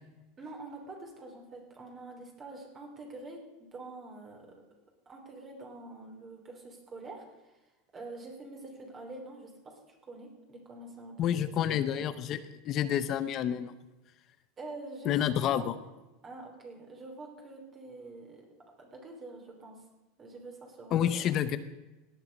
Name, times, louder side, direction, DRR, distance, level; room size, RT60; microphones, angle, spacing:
voice 1, 0.4-4.5 5.0-7.6 7.9-11.2 11.7-11.8 14.6-15.7 16.2-18.5 18.8-19.8 20.2-21.3, right 2 dB, 25° right, 1 dB, 3.1 m, -46 dB
voice 2, 11.2-13.7 15.0-15.7 20.9-21.6, left 10 dB, 40° left, 13 dB, 0.7 m, -29 dB
17.0 x 9.1 x 5.3 m, 1.1 s
supercardioid pair, 140°, 0 cm